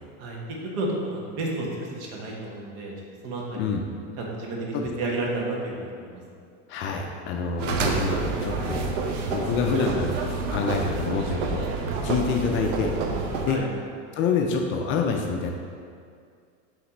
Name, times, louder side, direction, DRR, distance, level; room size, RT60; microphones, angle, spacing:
voice 1, 0.2-2.9 3.2-3.7 4.2-6.2 13.5-13.7, right 2 dB, 60° right, -2 dB, 1.5 m, -31 dB
voice 2, 6.7-8.8 9.3-12.9 13.4-13.6 14.1-15.5, left 5 dB, 35° left, 2 dB, 0.4 m, -27 dB
sound 1, 7.6-13.5, right 4 dB, 80° right, 0.8 m, -28 dB
5.6 x 3.3 x 5.3 m, 2.2 s
supercardioid pair, 130°, 37 cm